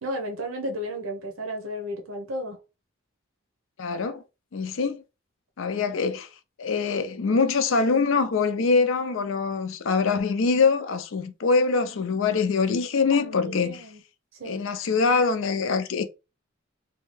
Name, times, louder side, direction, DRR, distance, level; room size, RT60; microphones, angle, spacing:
voice 1, 0.0-2.6 5.8-6.0 13.1-14.0 14.3-14.6, equal, 90° right, 0.7 m, -34 dB
voice 2, 3.8-4.2 4.5-5.0 5.6-6.3 6.6-13.8 14.4-16.0, left 4 dB, 70° left, 0.5 m, -24 dB
2.7 x 2.3 x 3.1 m
head